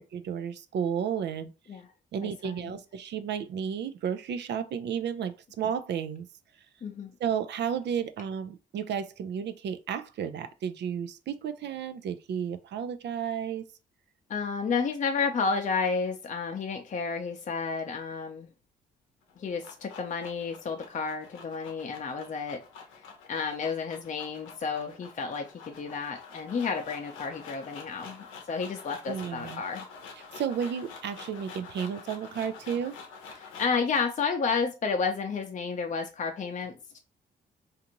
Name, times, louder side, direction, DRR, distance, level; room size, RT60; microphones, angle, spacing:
voice 1, 0.0-1.5 2.1-6.3 7.2-13.6 29.1-29.6 30.3-33.0, right 8 dB, 65° right, 0.5 m, -32 dB
voice 2, 2.2-2.8 6.8-7.1 14.3-18.5 19.4-22.6 23.3-29.9 33.4-37.0, left 5 dB, 40° left, 0.6 m, -31 dB
sound 1, 19.2-33.8, left 5 dB, 90° left, 0.6 m, -47 dB
2.5 x 2.5 x 2.9 m
supercardioid pair, 55°, 19 cm